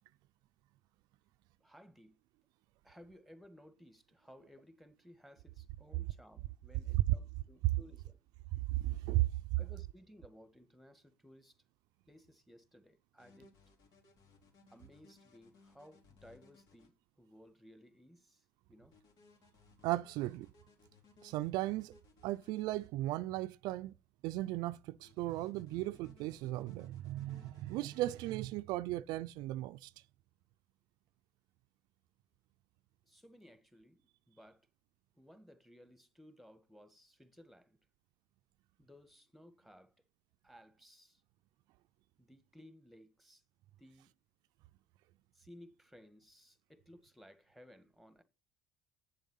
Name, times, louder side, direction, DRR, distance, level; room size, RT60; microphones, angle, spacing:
voice 1, 1.6-2.1 2.8-8.2 9.6-11.6 12.1-13.5 14.7-19.0 33.0-34.7 35.1-37.8 38.8-39.9 40.4-41.2 42.2-43.4 43.8-44.1 45.3-48.2, equal, ahead, 1.6 m, -59 dB
voice 2, 8.5-9.3 19.8-20.5 21.2-22.0 22.2-23.9 24.2-29.9, right 16 dB, 75° right, 0.5 m, -36 dB
sound 1, 13.2-16.9 18.9-22.9 25.0-28.2, left 4 dB, 65° left, 3.4 m, -64 dB
8.4 x 7.2 x 5.5 m
supercardioid pair, 80°, 7 cm